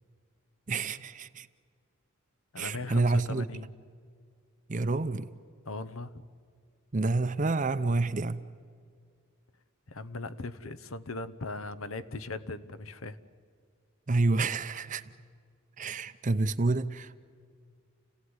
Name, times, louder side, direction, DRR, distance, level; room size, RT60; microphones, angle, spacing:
voice 1, 0.7-1.5 2.6-3.5 4.7-5.3 6.9-8.4 14.1-15.0 15.8-17.2, right 3 dB, 40° right, 0.6 m, -28 dB
voice 2, 2.5-3.7 5.7-6.2 9.9-13.2, left 2 dB, 85° left, 1.0 m, -39 dB
29.0 x 16.5 x 9.6 m
head